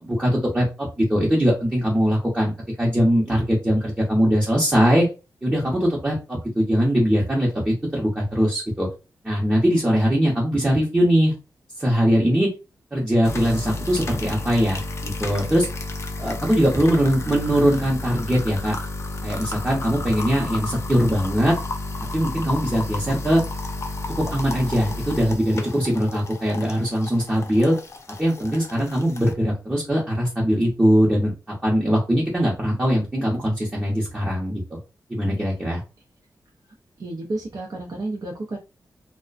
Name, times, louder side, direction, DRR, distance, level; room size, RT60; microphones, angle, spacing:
voice 1, 0.0-2.5 2.8-5.1 5.4-8.9 9.2-11.3 11.8-12.5 12.9-15.7 16.2-18.7 19.2-21.5 22.1-23.4 24.2-27.7 28.2-34.8 35.1-35.8, equal, 15° right, -4 dB, 0.8 m, -21 dB
sound 1, 13.2-29.3, left 2 dB, 40° left, 0.4 m, -32 dB
voice 2, 37.0-38.6, right 2 dB, 55° right, -1 dB, 0.5 m, -31 dB
2.4 x 2.1 x 2.4 m, 0.29 s
wide cardioid pair, 110°, 7 cm